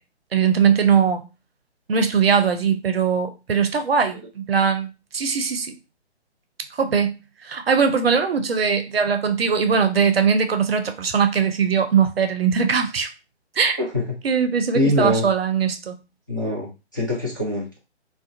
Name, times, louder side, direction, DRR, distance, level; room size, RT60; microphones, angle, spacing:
voice 1, 0.3-1.3 1.9-5.7 6.7-7.1 7.4-13.1 13.6-13.8 14.2-16.0, right 6 dB, 60° right, 0.5 m, -20 dB
voice 2, 13.8-14.2 14.7-15.3 16.3-17.8, left 1 dB, 20° left, 0.4 m, -23 dB
2.3 x 2.2 x 2.6 m
figure-of-eight pair, 135°, 34 cm